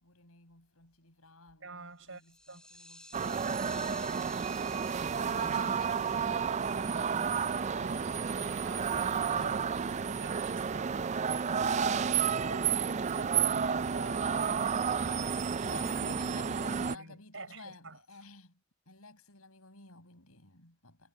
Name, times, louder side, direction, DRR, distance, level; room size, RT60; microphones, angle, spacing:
voice 1, 0.0-4.3 5.1-9.6 9.9-10.1 15.6-18.6 18.9-21.1, left 3 dB, 85° left, 7.7 m, -52 dB
voice 2, 1.6-2.2 2.5-2.7 8.7-9.1 9.4-9.6 10.2-11.9 12.4-14.3 15.6-15.7 16.9-18.0, right 3 dB, 65° right, 6.7 m, -47 dB
sound 1, 2.1-8.2, left 1 dB, 5° left, 4.0 m, -52 dB
sound 2, 3.1-16.9, right 6 dB, 30° right, 0.3 m, -31 dB
head